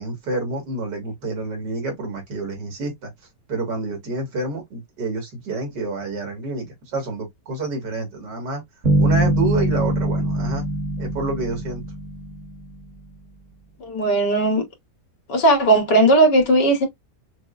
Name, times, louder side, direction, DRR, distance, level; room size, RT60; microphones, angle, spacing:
voice 1, 0.0-3.1 3.5-8.6 9.0-10.7 11.0-11.8, right 2 dB, 85° right, 2.3 m, -28 dB
sound 1, 8.8-12.8, right 1 dB, 50° right, 1.5 m, -22 dB
voice 2, 13.8-14.6 15.3-16.9, right 1 dB, 85° left, 2.0 m, -17 dB
5.8 x 2.1 x 2.4 m
omnidirectional pair, 1.8 m